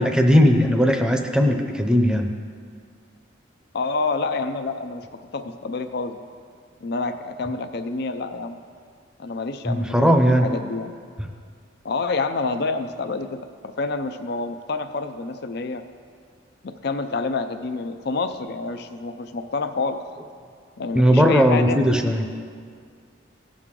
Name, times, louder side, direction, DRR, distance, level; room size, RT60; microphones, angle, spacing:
voice 1, 0.0-2.3 9.7-10.5 20.9-22.2, equal, 5° right, 4 dB, 0.7 m, -18 dB
voice 2, 3.7-5.0 5.3-6.3 6.8-8.6 9.2-10.9 11.8-13.4 13.6-15.8 16.6-20.0 20.8-21.8, left 3 dB, 55° left, 9 dB, 0.5 m, -28 dB
17.0 x 6.3 x 3.8 m, 2.1 s
head